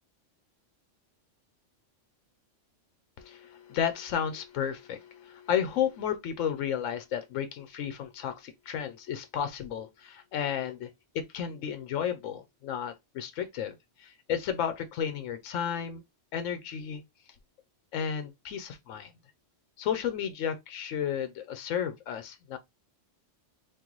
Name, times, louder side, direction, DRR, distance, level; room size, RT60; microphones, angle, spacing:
voice 1, 3.2-16.0 16.3-17.0 17.9-19.1 19.8-22.6, left 8 dB, 90° left, 1.0 m, -33 dB
3.7 x 2.5 x 3.0 m
omnidirectional pair, 1.3 m